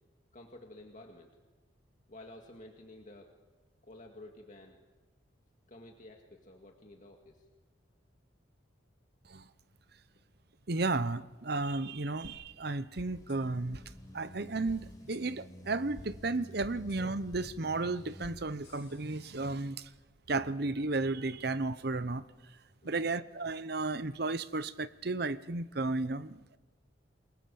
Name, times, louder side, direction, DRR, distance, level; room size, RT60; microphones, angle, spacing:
voice 1, 0.3-1.3 2.1-3.3 3.8-4.8 5.7-7.4 22.8-23.1, left 1 dB, 40° left, 2.1 m, -52 dB
voice 2, 10.7-13.8 14.1-19.9 20.3-22.3 22.8-26.4, right 3 dB, 55° right, 0.9 m, -33 dB
sound 1, 12.2-12.3 13.0-13.4 13.7-13.8 14.7-14.8 15.1-15.2 16.0-16.1 16.6-17.0 17.3-17.4 18.2-18.4 18.6-19.6, left 1 dB, 80° left, 5.6 m, -51 dB
sound 2, 13.1-18.5, left 1 dB, 20° left, 4.5 m, -52 dB
28.0 x 22.0 x 7.1 m
head